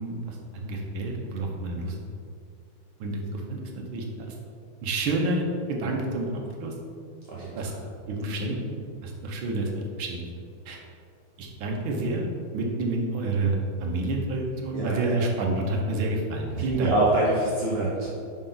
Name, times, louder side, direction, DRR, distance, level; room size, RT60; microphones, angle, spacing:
voice 1, 0.0-2.0 3.0-4.3 4.8-6.3 6.6-6.7 7.6-7.7 8.1-10.8 11.4-12.2 12.5-16.9, right 2 dB, 80° right, 0 dB, 1.7 m, -29 dB
voice 2, 7.3-7.6 14.7-15.2 16.5-18.1, right 2 dB, 50° right, -6 dB, 0.7 m, -25 dB
5.6 x 5.3 x 3.8 m, 2.4 s
omnidirectional pair, 2.2 m